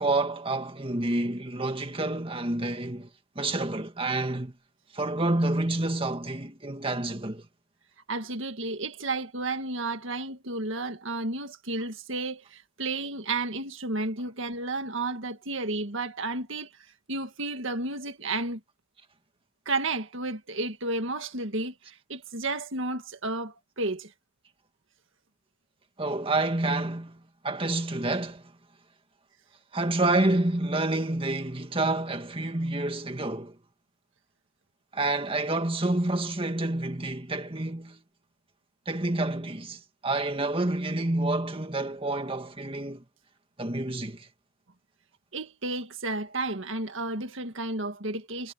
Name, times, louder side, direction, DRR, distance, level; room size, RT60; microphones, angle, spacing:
voice 1, 0.0-3.1 3.4-4.5 4.9-7.5 26.0-28.4 29.7-33.6 34.9-38.0 38.9-43.0 43.6-44.3, right 2 dB, 25° right, 2.0 m, -28 dB
voice 2, 8.1-16.7 17.1-18.6 19.7-24.1 45.3-48.5, right 2 dB, 60° right, 1.9 m, -32 dB
head